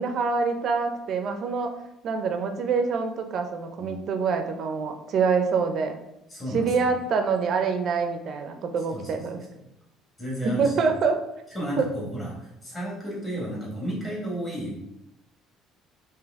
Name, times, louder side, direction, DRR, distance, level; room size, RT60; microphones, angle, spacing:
voice 1, 0.0-1.7 2.0-5.9 6.5-9.4 10.6-11.2 11.8-11.9, right 5 dB, 40° right, 6 dB, 0.5 m, -25 dB
voice 2, 6.3-6.9 8.9-9.2 10.2-10.7 11.5-14.7, equal, 20° left, -5 dB, 1.7 m, -32 dB
5.1 x 2.8 x 3.5 m, 0.85 s
cardioid pair, 170°, 0 cm